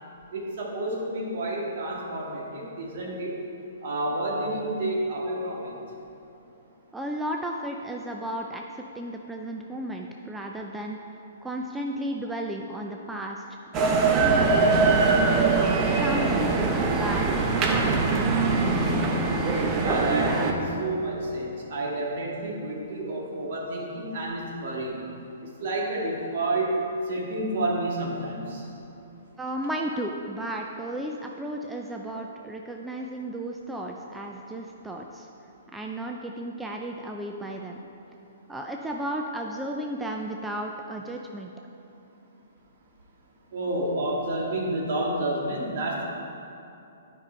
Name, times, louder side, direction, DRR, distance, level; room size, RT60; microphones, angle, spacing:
voice 1, 0.3-3.4 3.8-5.7 19.8-25.0 25.6-26.8 27.1-28.7 43.5-46.1, right 1 dB, 60° right, -3 dB, 1.8 m, -30 dB
voice 2, 6.9-11.0 11.4-15.2 15.8-18.9 29.4-35.3 35.7-37.8 38.5-41.5, right 1 dB, 5° right, 1 dB, 0.5 m, -34 dB
sound 1, 13.7-20.5, right 4 dB, 30° right, 0.8 m, -22 dB
9.7 x 5.4 x 4.4 m, 2.8 s
hypercardioid pair, 125°, 0 cm